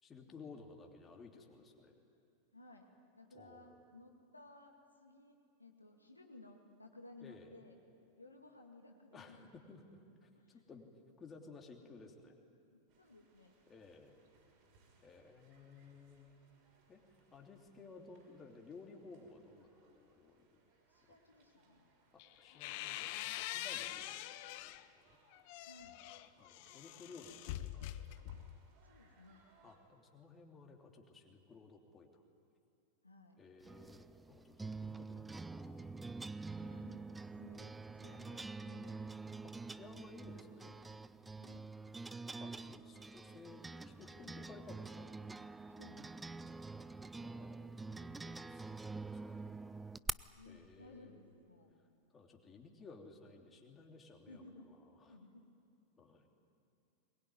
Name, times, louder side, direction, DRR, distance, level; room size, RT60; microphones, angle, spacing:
voice 1, 0.0-2.0 3.3-3.7 7.2-7.5 9.1-9.8 10.2-10.9 11.2-12.4 13.7-14.2 15.0-16.3 16.9-17.0 17.3-20.6 22.1-25.2 26.4-28.2 29.6-32.2 33.4-35.9 39.4-40.8 42.4-45.1 46.7-46.9 47.1-49.7 50.4-51.3 52.1-55.1 56.0-56.3, left 4 dB, 20° left, 2 dB, 3.0 m, -57 dB
voice 2, 2.5-7.8 8.2-9.5 10.3-10.6 12.7-13.5 20.9-21.9 25.6-26.0 28.8-29.4 33.0-33.4 36.6-39.1 41.4-41.7 45.8-46.1 50.4-51.7 54.3-54.7 55.1-55.4, left 2 dB, 85° left, 2 dB, 2.3 m, -58 dB
sound 1, 12.9-29.8, right 3 dB, 45° right, 6.0 m, -72 dB
sound 2, 22.2-24.9 25.3-28.7, left 14 dB, 45° left, 0.8 m, -45 dB
sound 3, 33.6-50.1, right 3 dB, 10° right, 0.5 m, -46 dB
22.0 x 21.5 x 9.7 m, 2.5 s
figure-of-eight pair, 90°, 0 cm